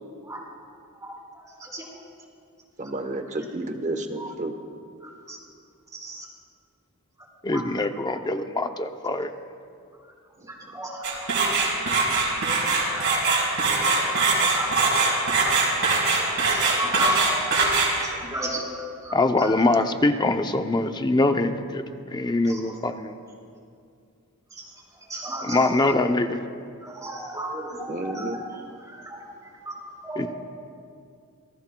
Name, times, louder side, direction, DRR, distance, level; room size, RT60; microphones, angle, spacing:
voice 1, 1.0-1.9 4.2-4.3 5.0-5.4 5.9-6.3 7.5-7.6 10.5-11.4 12.3-12.6 12.9-13.1 14.5-14.7 15.1-15.2 16.5-17.4 18.0-18.6 19.0-19.5 22.5-22.8 24.5-24.7 25.1-25.9 26.8-29.3 29.7-30.3, right 1 dB, 15° right, -4 dB, 3.7 m, -34 dB
voice 2, 2.8-4.6 10.4-10.7 27.9-28.4, right 2 dB, 35° right, 6 dB, 1.0 m, -31 dB
voice 3, 7.4-9.3 19.1-21.8 22.1-23.1 25.4-26.4 30.2-30.3, left 2 dB, 20° left, 7 dB, 0.6 m, -23 dB
sound 1, 11.0-18.2, right 4 dB, 65° right, 4.9 m, -22 dB
27.0 x 18.5 x 2.3 m, 2.4 s
head